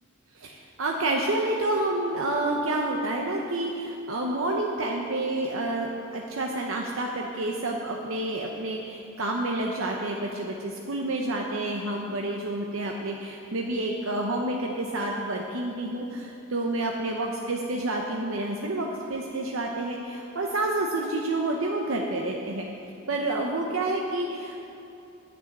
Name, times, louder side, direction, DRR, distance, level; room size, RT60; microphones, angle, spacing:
voice 1, 0.3-22.6 23.1-24.7, right 2 dB, 70° right, 0 dB, 0.9 m, -29 dB
10.5 x 6.2 x 9.0 m, 2.7 s
head